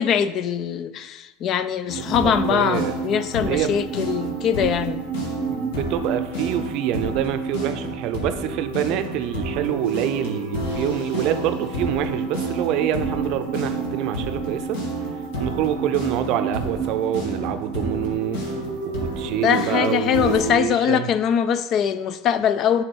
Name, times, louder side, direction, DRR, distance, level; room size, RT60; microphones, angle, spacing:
voice 1, 0.0-5.0 19.3-22.8, left 8 dB, 45° left, 0.4 m, -22 dB
sound 1, 1.9-20.5, right 2 dB, 75° left, 1.9 m, -28 dB
voice 2, 2.0-2.9 3.5-3.7 5.5-14.8 15.4-18.6 18.8-21.1, right 11 dB, 55° right, 0.5 m, -26 dB
6.9 x 3.5 x 5.3 m
hypercardioid pair, 105°, 0 cm